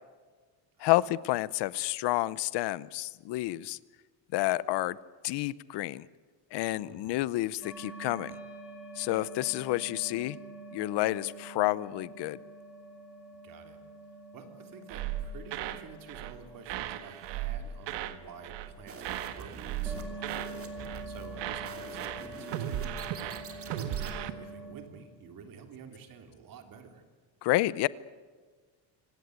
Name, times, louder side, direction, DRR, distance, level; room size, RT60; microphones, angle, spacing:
voice 1, 0.8-3.8 4.3-5.0 5.2-6.1 6.5-8.3 9.0-10.4 10.7-12.4 27.4-27.9, left 17 dB, 65° left, 19 dB, 0.8 m, -29 dB
sound 1, 7.6-24.7, right 2 dB, 5° right, 3.9 m, -47 dB
voice 2, 13.4-13.8 14.3-27.0, right 6 dB, 50° right, 6 dB, 3.4 m, -50 dB
sound 2, 14.9-15.8 16.1-16.4 16.7-18.2 18.4-18.7 19.0-20.5 20.8-21.1 21.4-24.3, right 12 dB, 75° right, 1.5 m, -36 dB
sound 3, 18.9-24.2, right 5 dB, 30° right, 2.8 m, -46 dB
26.0 x 18.0 x 9.3 m, 1.5 s
cardioid pair, 165°, 44 cm